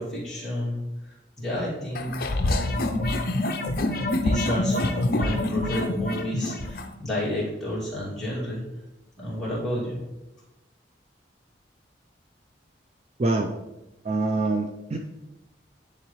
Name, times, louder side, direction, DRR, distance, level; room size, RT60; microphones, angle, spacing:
voice 1, 0.0-3.5 4.1-8.6 9.2-10.0, left 1 dB, ahead, -9 dB, 2.5 m, -31 dB
sound 1, 1.9-6.9, left 2 dB, 50° left, 0.5 m, -26 dB
voice 2, 13.2-13.5 14.0-15.0, right 2 dB, 35° right, 3 dB, 0.4 m, -25 dB
10.0 x 3.8 x 3.1 m, 0.98 s
head